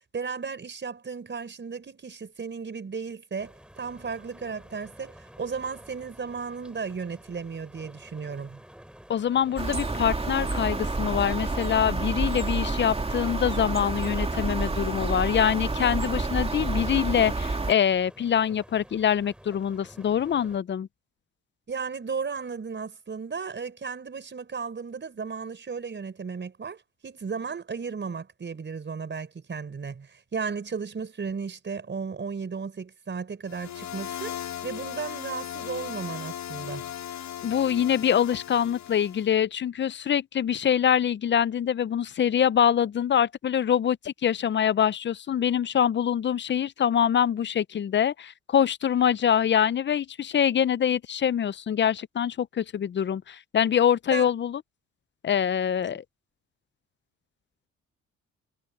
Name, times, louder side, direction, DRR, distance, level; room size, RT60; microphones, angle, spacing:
voice 1, 0.1-8.6 21.7-36.9 54.1-54.3 55.8-55.9, right 5 dB, 40° right, 4.9 m, -35 dB
sound 1, 3.4-20.6, equal, 5° right, 7.5 m, -50 dB
voice 2, 9.1-20.9 37.4-54.6 55.2-56.0, left 9 dB, 40° left, 0.5 m, -24 dB
sound 2, 9.6-17.7, right 3 dB, 20° right, 2.6 m, -29 dB
sound 3, 33.5-39.3, left 11 dB, 65° left, 1.3 m, -37 dB
cardioid pair, 90°, 30 cm